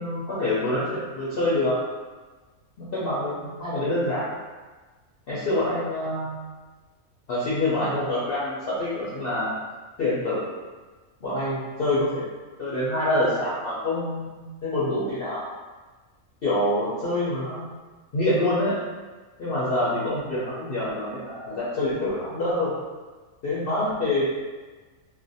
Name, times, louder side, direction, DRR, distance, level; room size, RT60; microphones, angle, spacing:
voice 1, 0.0-1.7 2.9-3.3 3.6-4.3 5.3-6.4 7.3-9.5 10.0-10.4 11.2-12.2 12.6-15.4 16.4-17.7 18.1-18.7 19.4-22.8 23.4-24.3, left 1 dB, 55° left, -10 dB, 0.7 m, -26 dB
2.5 x 2.2 x 2.6 m, 1.3 s
omnidirectional pair, 1.4 m